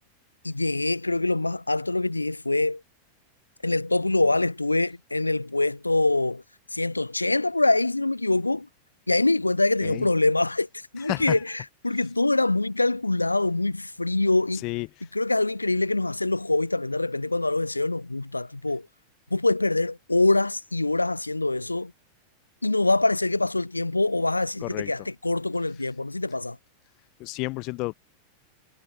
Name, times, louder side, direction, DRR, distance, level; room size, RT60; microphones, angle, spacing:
voice 1, 0.4-2.8 3.6-6.4 6.7-8.7 9.1-10.7 10.9-14.6 15.1-18.9 19.3-21.9 22.6-26.6, left 2 dB, 85° left, 5.9 m, -24 dB
voice 2, 27.2-27.9, left 25 dB, 40° left, 6.9 m, -30 dB
figure-of-eight pair, 90°, 0 cm